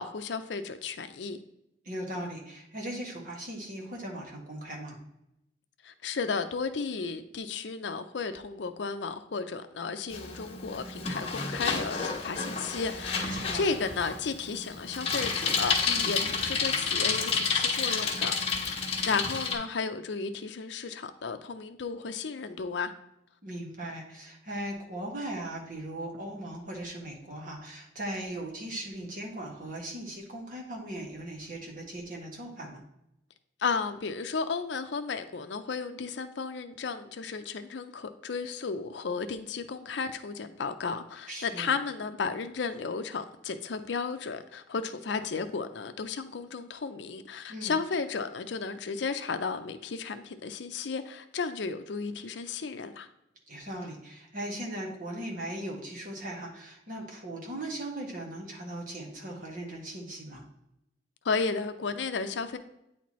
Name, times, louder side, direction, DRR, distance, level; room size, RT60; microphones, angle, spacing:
voice 1, 0.0-1.4 5.8-18.6 19.0-22.9 33.6-53.1 61.2-62.6, left 4 dB, 70° left, 0.5 m, -34 dB
voice 2, 1.8-5.0 13.4-13.7 15.9-16.1 23.4-32.8 41.3-41.7 47.5-47.7 53.5-60.4, right 1 dB, 45° right, 1.5 m, -38 dB
Bicycle, 10.1-19.5, left 5 dB, 35° left, 1.4 m, -30 dB
9.1 x 4.3 x 3.1 m
head